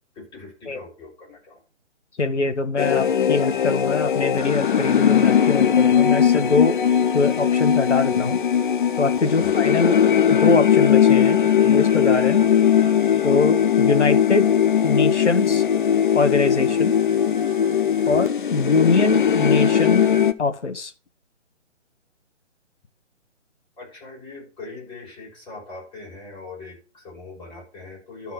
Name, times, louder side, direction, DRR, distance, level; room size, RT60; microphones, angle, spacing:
voice 1, 0.2-1.6 9.4-9.5 18.0-18.2 23.8-28.3, left 3 dB, 10° left, 5.4 m, -41 dB
voice 2, 2.2-6.8 7.1-8.4 9.0-10.0 10.3-12.4 13.2-14.5 14.8-15.6 16.1-17.0 18.1-20.1 20.4-20.9, left 3 dB, 70° left, 1.5 m, -23 dB
sound 1, 2.8-20.3, left 8 dB, 40° left, 0.7 m, -19 dB
12.5 x 4.4 x 5.9 m
figure-of-eight pair, 140°, 37 cm